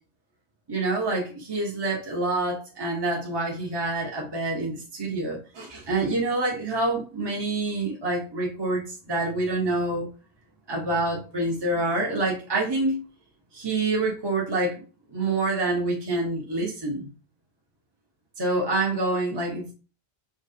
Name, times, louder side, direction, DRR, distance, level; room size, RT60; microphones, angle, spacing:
voice 1, 0.7-10.1 10.7-13.0 13.5-14.8 15.1-17.1 18.4-19.7, right 2 dB, 25° right, 1.1 m, -27 dB
5.0 x 3.1 x 2.7 m
omnidirectional pair, 1.1 m